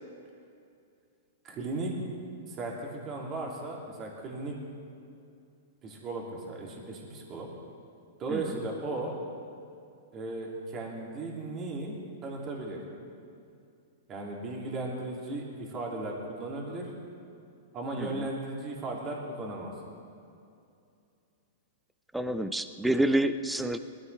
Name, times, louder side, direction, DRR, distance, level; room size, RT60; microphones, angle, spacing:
voice 1, 1.4-1.9 2.5-4.6 5.8-7.5 8.2-9.2 10.1-12.8 14.1-16.9 17.7-19.7, right 2 dB, 30° right, -2 dB, 2.6 m, -36 dB
voice 2, 18.0-18.3 22.1-23.8, right 1 dB, 5° right, 10 dB, 0.6 m, -28 dB
20.5 x 14.5 x 3.3 m, 2.5 s
hypercardioid pair, 125°, 0 cm